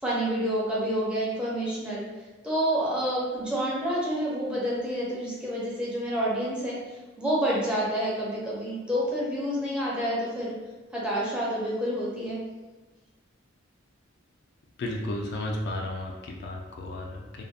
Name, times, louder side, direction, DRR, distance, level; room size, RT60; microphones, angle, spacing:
voice 1, 0.0-2.0 2.4-6.8 7.2-10.5 10.9-12.4, equal, 5° right, -6 dB, 0.5 m, -28 dB
voice 2, 14.8-17.4, left 1 dB, 55° left, 0 dB, 0.3 m, -33 dB
2.6 x 2.0 x 2.4 m, 1.2 s
head